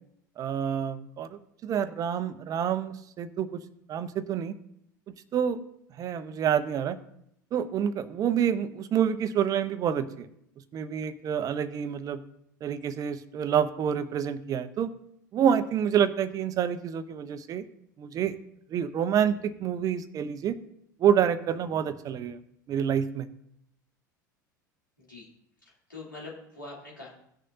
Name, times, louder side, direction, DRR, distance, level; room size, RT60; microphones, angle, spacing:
voice 1, 0.4-3.5 3.9-4.5 5.3-5.6 6.0-7.0 7.5-10.3 10.7-12.2 12.6-14.9 15.3-17.7 18.0-18.4 18.7-20.6 21.0-22.4 22.7-23.3, right 8 dB, 35° right, 13 dB, 0.7 m, -27 dB
voice 2, 25.0-25.3 25.6-27.1, left 3 dB, 85° left, -4 dB, 2.9 m, -44 dB
17.0 x 6.5 x 2.6 m, 0.75 s
figure-of-eight pair, 75°, 10 cm